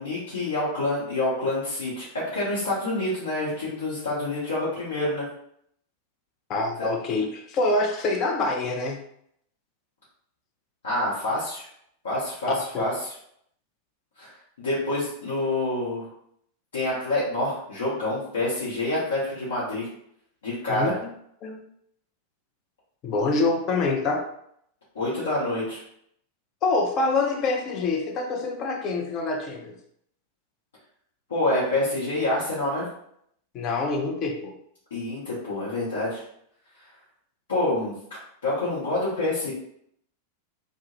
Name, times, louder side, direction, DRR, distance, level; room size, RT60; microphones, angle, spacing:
voice 1, 0.0-5.3 6.8-6.9 10.8-11.7 12.0-13.1 14.2-14.3 14.6-16.1 16.7-19.9 20.4-21.0 24.9-25.8 31.3-32.9 34.9-36.2 37.5-37.9 38.4-39.5, left 1 dB, 65° left, -9 dB, 0.8 m, -27 dB
voice 2, 6.5-9.0 12.5-12.8 20.7-21.1 21.4-21.6 23.0-24.3 26.6-29.8 33.5-34.6, left 3 dB, 35° left, 3 dB, 0.4 m, -26 dB
2.2 x 2.0 x 2.9 m, 0.70 s
figure-of-eight pair, 90°, 0 cm